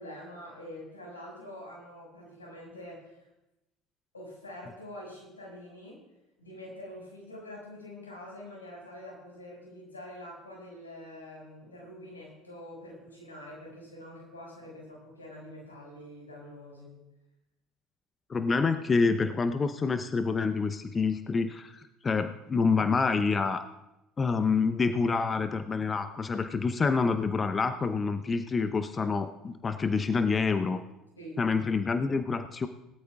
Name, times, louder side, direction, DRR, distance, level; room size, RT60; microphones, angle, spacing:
voice 1, 0.0-3.2 4.1-6.0 6.4-17.0 31.2-31.4, left 1 dB, 90° left, -3 dB, 5.6 m, -45 dB
voice 2, 18.3-23.6 24.2-30.8 31.4-32.7, left 4 dB, 30° left, 9 dB, 0.8 m, -27 dB
21.0 x 13.0 x 2.4 m, 0.94 s
figure-of-eight pair, 60°, 0 cm